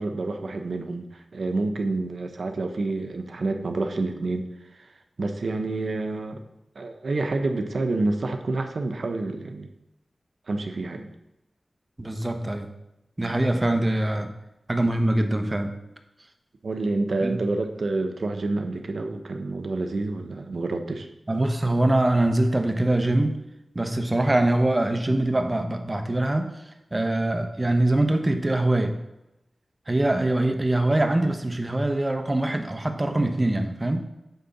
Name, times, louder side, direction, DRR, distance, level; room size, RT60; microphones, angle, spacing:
voice 1, 0.0-4.5 4.8-4.9 5.2-6.4 6.7-9.7 10.5-11.1 16.6-21.1, right 2 dB, 75° right, 5 dB, 0.9 m, -28 dB
voice 2, 12.0-12.7 13.2-14.3 14.7-15.7 17.2-17.4 21.3-23.4 23.7-26.5 26.9-29.0 29.9-34.1, right 1 dB, 30° right, 6 dB, 1.2 m, -23 dB
9.4 x 3.8 x 7.1 m, 0.92 s
cardioid pair, 55°, 0 cm